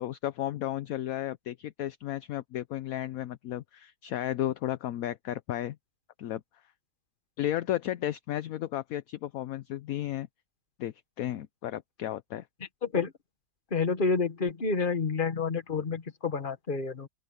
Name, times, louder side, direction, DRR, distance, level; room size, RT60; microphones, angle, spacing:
voice 1, 0.0-5.8 6.2-6.4 7.4-10.3 10.8-12.4, left 13 dB, 65° left, 1.0 m, -33 dB
voice 2, 12.8-13.1 13.7-17.1, left 4 dB, 30° left, 1.6 m, -29 dB
open air
omnidirectional pair, 1.8 m